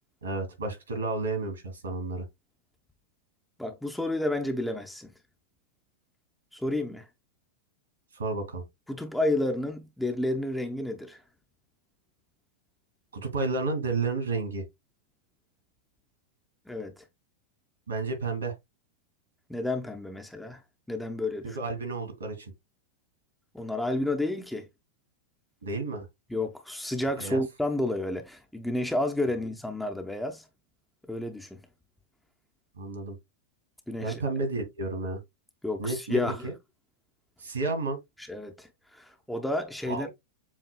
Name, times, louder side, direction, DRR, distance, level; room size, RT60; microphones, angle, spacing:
voice 1, 0.2-2.3 8.1-8.6 13.1-14.6 17.9-18.5 21.4-22.5 25.6-26.1 27.2-27.4 32.8-33.2 34.0-35.2 35.8-36.5 37.4-38.0 39.9-40.1, right 3 dB, 75° right, 2.2 m, -31 dB
voice 2, 3.6-5.1 6.5-7.1 8.9-11.2 16.7-17.0 19.5-20.6 20.9-21.6 23.5-24.7 26.3-30.4 31.1-31.6 33.9-34.2 35.6-36.5 38.3-40.1, left 1 dB, 5° left, 0.6 m, -31 dB
7.2 x 2.7 x 2.3 m
figure-of-eight pair, 90°, 0 cm